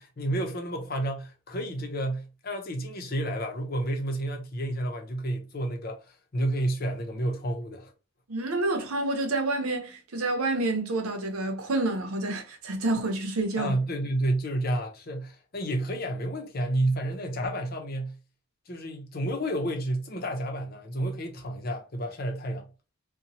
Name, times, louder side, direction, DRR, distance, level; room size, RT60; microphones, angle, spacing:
voice 1, 0.0-7.9 13.6-18.2 18.7-22.7, right 1 dB, 45° left, 0.6 m, -30 dB
voice 2, 8.3-13.8, right 2 dB, 90° right, 0.8 m, -28 dB
2.9 x 2.2 x 2.7 m
head